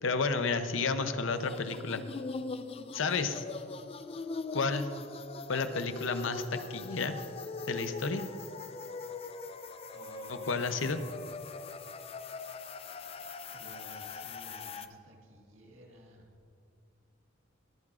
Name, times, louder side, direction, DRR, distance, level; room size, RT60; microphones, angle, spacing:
voice 1, 0.0-2.0 2.9-3.4 4.5-4.9 5.5-7.1 7.7-8.2 10.3-11.0, left 4 dB, 75° left, 10 dB, 0.7 m, -31 dB
sound 1, 1.3-14.9, left 4 dB, 30° left, 0.4 m, -41 dB
voice 2, 9.9-11.0 13.5-16.3, equal, 80° right, 0 dB, 1.8 m, -54 dB
21.5 x 9.5 x 2.5 m, 2.6 s
head